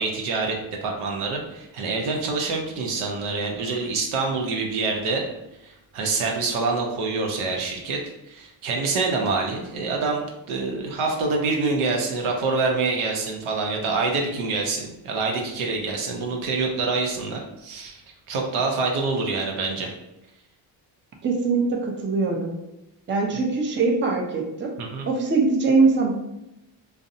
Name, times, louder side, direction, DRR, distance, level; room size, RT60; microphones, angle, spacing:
voice 1, 0.0-5.2 5.6-8.0 8.3-18.0 18.3-19.9 23.3-23.4 24.8-25.1, right 3 dB, 75° right, 1 dB, 0.7 m, -26 dB
voice 2, 21.2-22.5 23.1-24.7 25.1-26.1, right 4 dB, 25° right, 1 dB, 0.5 m, -22 dB
2.5 x 2.0 x 2.6 m, 0.90 s
cardioid pair, 70°, 50 cm